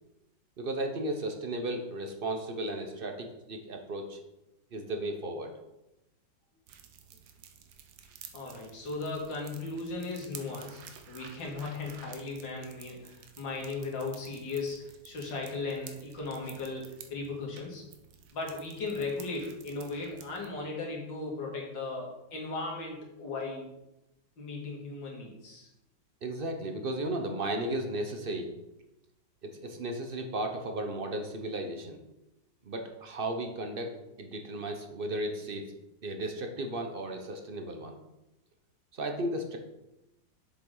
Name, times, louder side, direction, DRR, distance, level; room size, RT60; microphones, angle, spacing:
voice 1, 0.6-4.2 4.7-5.5 26.2-28.5 29.4-32.0 32.6-35.6 36.0-38.0 38.9-39.6, right 1 dB, 50° right, 4 dB, 0.7 m, -35 dB
sound 1, 6.7-20.5, right 8 dB, 80° right, 1.6 m, -52 dB
voice 2, 8.3-17.8 18.3-23.6 24.4-25.7, left 3 dB, 75° left, -2 dB, 2.7 m, -37 dB
7.4 x 6.9 x 3.9 m, 0.92 s
omnidirectional pair, 2.0 m